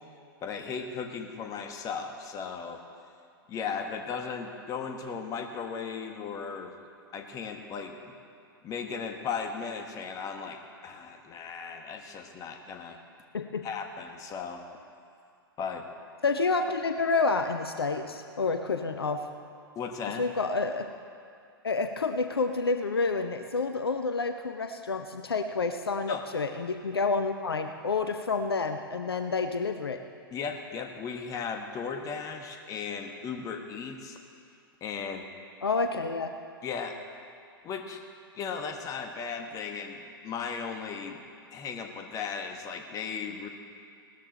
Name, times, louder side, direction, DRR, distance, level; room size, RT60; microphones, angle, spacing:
voice 1, 0.4-2.8 3.5-6.8 7.1-8.2 8.6-13.0 13.6-14.6 15.6-15.9 19.7-20.2 26.1-26.2 30.3-34.2 34.8-35.2 36.6-37.0 37.6-38.0 38.3-41.2 41.5-43.5, left 6 dB, 25° left, 5 dB, 1.4 m, -36 dB
voice 2, 13.3-13.7 16.2-19.3 20.2-20.9 21.6-30.0 35.6-36.3, left 4 dB, 75° left, 7 dB, 0.7 m, -29 dB
18.0 x 13.5 x 4.1 m, 2.4 s
figure-of-eight pair, 100°, 13 cm